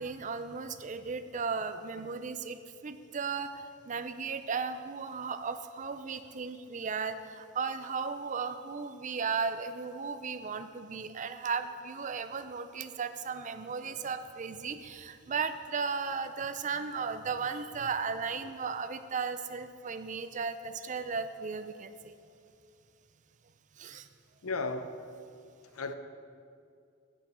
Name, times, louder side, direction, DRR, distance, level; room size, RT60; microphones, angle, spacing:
voice 1, 0.0-22.1 23.8-24.1, right 5 dB, 35° right, 0.5 m, -36 dB
voice 2, 24.4-24.9 25.7-25.9, left 3 dB, 85° left, 0.7 m, -34 dB
16.0 x 6.9 x 4.3 m
head